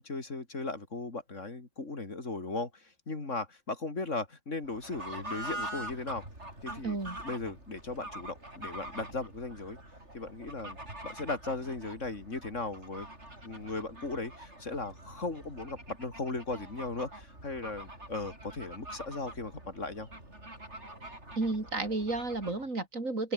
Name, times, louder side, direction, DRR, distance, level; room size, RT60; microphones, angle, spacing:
voice 1, 0.0-6.2 6.6-7.0 7.2-9.8 10.1-10.8 11.0-13.1 13.4-20.1, left 3 dB, 65° left, 3.8 m, -37 dB
Fowl / Bird, 4.6-22.7, right 1 dB, 55° right, 8.5 m, -45 dB
voice 2, 6.8-7.2 21.4-23.3, right 2 dB, 75° right, 4.8 m, -32 dB
open air
omnidirectional pair, 1.4 m